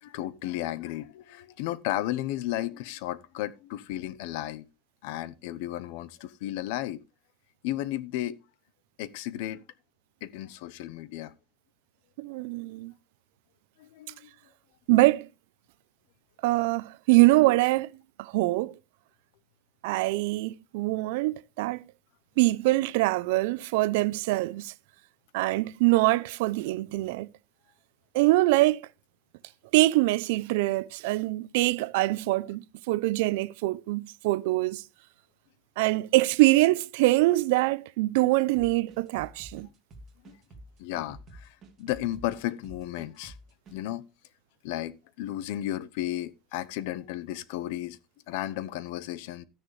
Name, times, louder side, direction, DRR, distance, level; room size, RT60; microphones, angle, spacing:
voice 1, 0.0-4.6 5.0-7.0 7.6-8.4 9.0-9.6 10.2-11.3 13.8-14.3 40.2-40.4 40.8-43.4 43.7-44.1 44.6-48.0 48.3-49.4, left 14 dB, 70° left, 0.8 m, -34 dB
voice 2, 12.2-12.9 14.9-15.3 16.4-17.9 18.2-18.7 19.8-21.8 22.4-24.7 25.3-27.3 28.1-28.9 29.7-34.8 35.8-39.7, right 20 dB, 80° right, 0.6 m, -24 dB
sound 1, 38.5-43.8, right 1 dB, 30° right, 2.8 m, -49 dB
13.0 x 9.9 x 3.2 m
cardioid pair, 175°, 0 cm